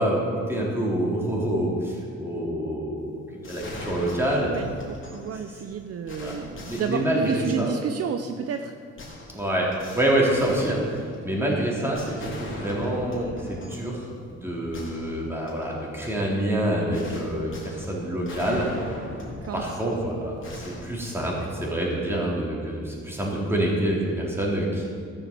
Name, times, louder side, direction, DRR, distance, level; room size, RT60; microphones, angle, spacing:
voice 1, 0.0-4.5 6.2-6.3 6.7-7.7 9.3-18.7 19.5-24.9, right 1 dB, 10° right, -4 dB, 3.7 m, -27 dB
sound 1, 3.4-5.3 5.7-5.8 6.1-7.7 9.0-11.4 11.9-13.9 14.3-14.4 14.7-15.7 16.9-20.0 20.4-21.7, left 2 dB, 40° left, 3.3 m, -40 dB
voice 2, 4.5-8.7 18.5-18.7 19.4-19.6, right 7 dB, 55° right, 7 dB, 0.7 m, -30 dB
14.0 x 7.2 x 6.9 m, 2.2 s
cardioid pair, 90°, 30 cm